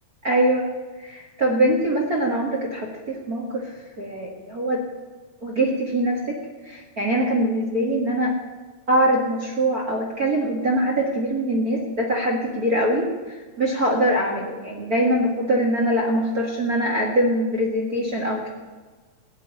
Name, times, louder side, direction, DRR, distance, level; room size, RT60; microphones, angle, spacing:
voice 1, 0.2-0.7 1.0-3.6 4.0-4.8 5.4-6.4 6.6-8.3 8.9-18.5, right 1 dB, 40° right, -1 dB, 1.3 m, -23 dB
17.0 x 6.9 x 9.8 m, 1.4 s
omnidirectional pair, 4.7 m